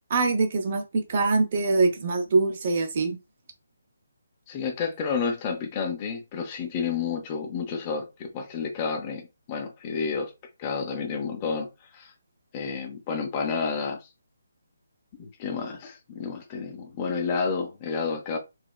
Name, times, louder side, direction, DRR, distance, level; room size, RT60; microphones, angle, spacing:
voice 1, 0.1-3.2, right 3 dB, 40° right, 0.7 m, -24 dB
voice 2, 4.5-9.2 9.5-10.3 10.6-11.7 11.9-12.1 12.5-14.1 15.2-18.4, left 5 dB, 25° left, 0.5 m, -30 dB
3.1 x 2.1 x 2.3 m
figure-of-eight pair, 150°, 0 cm